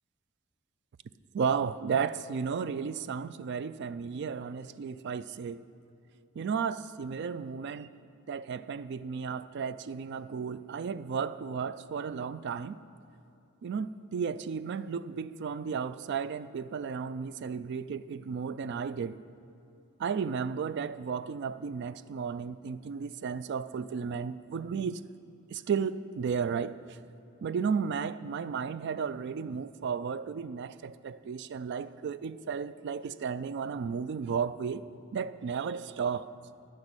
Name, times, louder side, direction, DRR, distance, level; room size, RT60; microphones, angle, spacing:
voice 1, 1.3-5.6 6.4-7.9 8.3-12.8 13.6-19.2 20.0-25.0 25.5-27.0 27.4-34.8 35.1-36.3, right 6 dB, 50° right, 15 dB, 0.3 m, -34 dB
12.0 x 5.3 x 8.8 m, 2.8 s
head